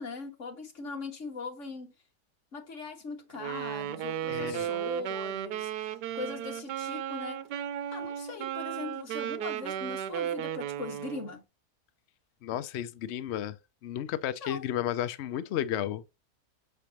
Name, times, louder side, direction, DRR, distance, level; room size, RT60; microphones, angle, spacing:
voice 1, 0.0-1.9 2.5-7.4 7.9-11.4 14.4-14.7, left 4 dB, 50° left, 1.8 m, -40 dB
Wind instrument woodwind instrument, 3.3-11.3, right 10 dB, 90° right, 1.3 m, -35 dB
voice 2, 4.3-4.7 12.4-13.6 13.8-16.0, left 11 dB, 75° left, 0.6 m, -33 dB
6.7 x 5.0 x 2.9 m
omnidirectional pair, 1.7 m